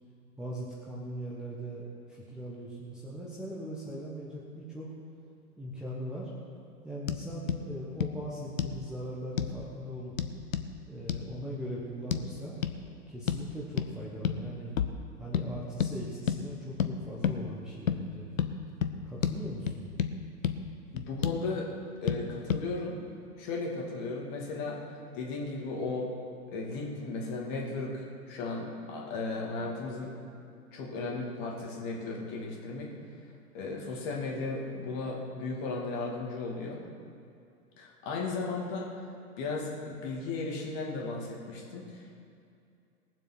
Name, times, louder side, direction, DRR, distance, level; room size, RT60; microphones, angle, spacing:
voice 1, 0.4-4.9 5.6-6.3 6.8-10.1 10.9-12.6 13.1-14.7 15.2-18.3 19.0-19.9, equal, ahead, -8 dB, 1.1 m, -40 dB
sound 1, 7.1-7.2 7.5-7.6 8.0-8.1 8.6-8.8 9.4-9.6 10.2-10.7 11.1-11.2 12.1-12.2 12.6-12.8 13.3-13.5 13.8-13.9 14.2-14.4 14.8-15.0 15.3-15.5 15.8-15.9 16.3-16.4 16.8-16.9 17.2-17.4 17.9-18.0 18.4-18.5 18.8-18.9 19.2-19.4 19.7-20.1 20.4-20.6 21.0-21.4 22.1-22.2 22.5-22.6, left 8 dB, 55° left, 0.9 m, -29 dB
voice 2, 20.9-21.7 22.0-23.0 23.4-26.1 26.5-30.1 30.7-32.9 33.5-36.8 37.8-38.9 39.4-42.1, left 3 dB, 30° left, -1 dB, 2.5 m, -35 dB
19.5 x 7.6 x 6.2 m, 2.5 s
figure-of-eight pair, 115°, 48 cm